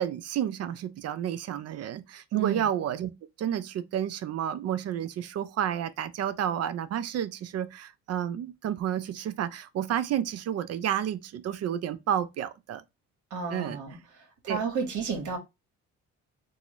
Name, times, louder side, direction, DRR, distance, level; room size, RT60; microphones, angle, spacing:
voice 1, 0.0-3.1 3.4-12.8 13.5-13.8 14.5-14.6, right 10 dB, 55° right, 0.4 m, -31 dB
voice 2, 2.3-2.6 13.3-15.4, right 6 dB, 75° right, 1.2 m, -31 dB
3.7 x 2.0 x 2.8 m
cardioid pair, 90°, 30 cm